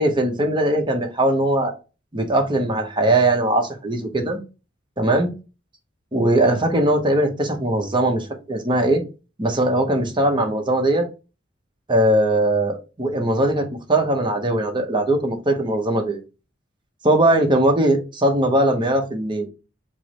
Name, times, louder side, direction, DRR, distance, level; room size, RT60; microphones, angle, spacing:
voice 1, 0.0-1.7 2.1-4.4 5.0-5.3 6.1-9.0 9.4-11.1 11.9-16.2 17.0-19.5, right 1 dB, 25° right, 4 dB, 0.8 m, -20 dB
4.5 x 2.0 x 4.5 m, 0.31 s
head